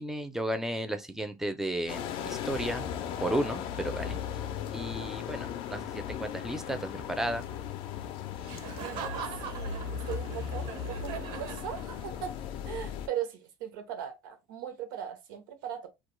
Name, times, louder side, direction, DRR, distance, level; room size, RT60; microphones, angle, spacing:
voice 1, 0.0-2.9 3.2-4.2 4.7-7.4, right 1 dB, 5° right, 0.4 m, -33 dB
sound 1, 1.9-13.1, left 8 dB, 55° left, 0.4 m, -37 dB
Laughter, 8.4-12.4, right 7 dB, 55° right, 0.5 m, -41 dB
voice 2, 9.4-12.4 12.6-15.9, right 10 dB, 90° right, 0.7 m, -39 dB
2.2 x 2.0 x 3.0 m
supercardioid pair, 115°, 10 cm